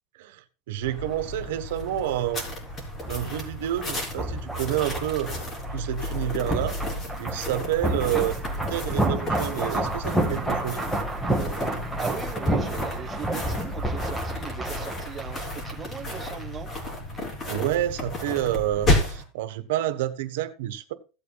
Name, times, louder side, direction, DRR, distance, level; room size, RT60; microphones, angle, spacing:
voice 1, 0.2-2.5 3.1-5.5 5.7-6.8 7.2-8.3 8.7-10.8 17.5-20.9, right 12 dB, 85° right, 1.3 m, -29 dB
sound 1, 0.8-19.2, left 1 dB, 30° left, 3.7 m, -32 dB
sound 2, 2.7-16.5 16.7-16.9, right 1 dB, ahead, 1.7 m, -30 dB
voice 2, 8.0-8.3 12.0-16.7, right 7 dB, 20° right, 1.2 m, -38 dB
16.0 x 8.5 x 2.4 m
supercardioid pair, 140°, 0 cm